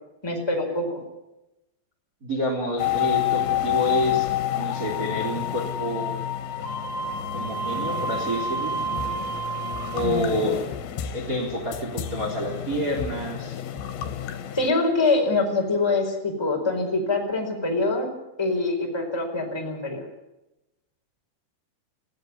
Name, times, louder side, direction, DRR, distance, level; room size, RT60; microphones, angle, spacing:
voice 1, 0.2-1.0 10.0-10.4 14.5-20.0, left 3 dB, 5° left, 1 dB, 3.9 m, -25 dB
voice 2, 2.2-4.3 4.5-6.2 7.3-8.7 9.9-10.6 11.1-13.6, equal, 20° right, 0 dB, 3.5 m, -28 dB
sound 1, 2.8-14.7, left 6 dB, 85° left, 3.6 m, -29 dB
20.0 x 16.5 x 9.8 m, 0.94 s
omnidirectional pair, 5.1 m